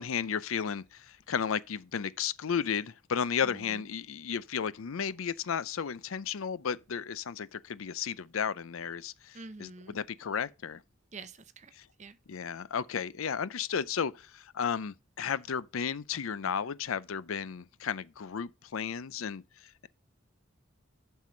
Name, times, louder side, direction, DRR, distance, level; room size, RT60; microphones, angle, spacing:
voice 1, 0.0-10.8 12.3-19.9, left 7 dB, 80° left, 0.5 m, -34 dB
voice 2, 3.4-3.9 9.3-10.0 11.1-12.2, right 3 dB, 35° right, 0.7 m, -47 dB
7.5 x 5.6 x 3.9 m
head